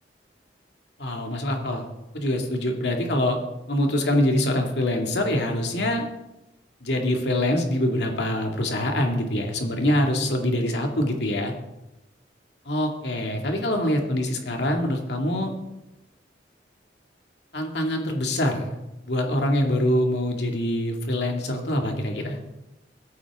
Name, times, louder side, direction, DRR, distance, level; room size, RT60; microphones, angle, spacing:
voice 1, 1.0-1.9 2.1-3.4 3.7-6.1 6.8-11.5 12.7-15.5 17.5-18.8 19.1-22.4, left 1 dB, 75° left, 2 dB, 2.2 m, -24 dB
17.0 x 14.5 x 3.6 m, 0.97 s
head